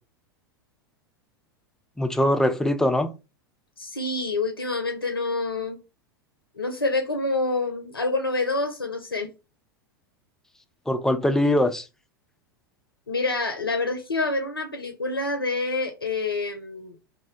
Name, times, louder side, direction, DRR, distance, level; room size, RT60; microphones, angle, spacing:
voice 1, 2.0-3.1 10.9-11.9, left 1 dB, 5° left, 0.3 m, -22 dB
voice 2, 3.8-5.8 6.5-9.3 13.1-17.0, left 3 dB, 90° left, 0.4 m, -27 dB
2.5 x 2.0 x 2.7 m
figure-of-eight pair, 90°, 12 cm